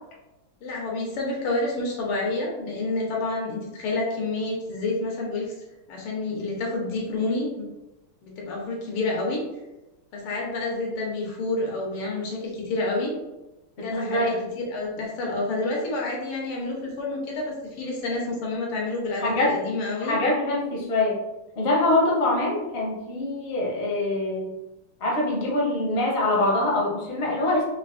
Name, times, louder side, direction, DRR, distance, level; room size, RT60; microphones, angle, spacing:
voice 1, 0.6-5.5 5.9-7.7 8.2-9.4 10.1-13.1 13.8-20.2, left 2 dB, 85° left, -2 dB, 1.9 m, -29 dB
voice 2, 13.8-14.4 19.2-19.6 20.0-21.2 21.6-24.5 25.0-27.6, left 2 dB, 50° left, -3 dB, 0.8 m, -24 dB
5.1 x 2.5 x 2.5 m, 0.98 s
omnidirectional pair, 2.4 m